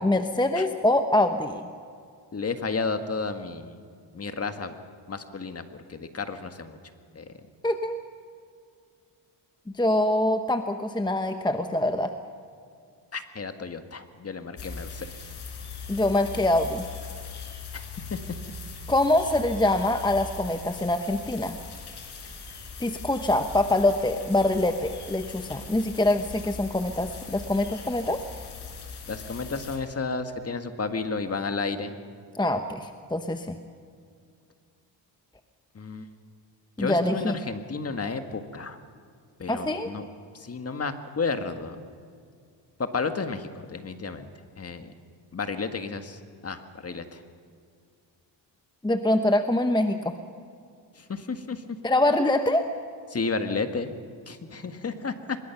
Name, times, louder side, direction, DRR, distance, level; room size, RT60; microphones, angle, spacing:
voice 1, 0.0-1.7 7.6-8.0 9.7-12.1 15.9-16.9 18.9-21.6 22.8-28.2 32.3-33.6 36.8-37.4 39.5-39.9 48.8-50.2 51.8-52.7, left 1 dB, 10° left, 7 dB, 1.0 m, -24 dB
voice 2, 2.3-3.8 4.1-4.8 5.1-5.6 5.9-6.8 7.1-7.3 13.1-15.1 18.1-18.2 29.1-32.0 35.8-36.1 36.8-38.8 39.4-40.0 40.3-41.8 42.8-44.3 44.6-44.9 45.3-47.2 51.0-51.6 53.1-53.9 54.3-55.1, left 4 dB, 35° left, 8 dB, 1.8 m, -32 dB
sound 1, 14.6-29.8, left 4 dB, 65° left, 4.8 m, -40 dB
24.5 x 22.0 x 5.9 m, 2.2 s
cardioid pair, 95°, 43 cm